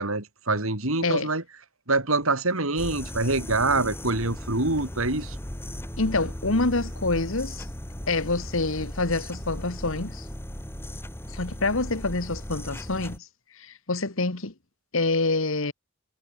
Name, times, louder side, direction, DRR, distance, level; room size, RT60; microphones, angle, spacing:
voice 1, 0.0-1.4 1.9-5.4, right 2 dB, 75° right, 4.2 m, -25 dB
sound 1, 2.8-13.2, equal, 10° left, 4.2 m, -37 dB
voice 2, 6.0-7.7 8.1-10.3 11.3-13.3 13.6-14.5 14.9-15.7, left 3 dB, 65° left, 1.7 m, -26 dB
head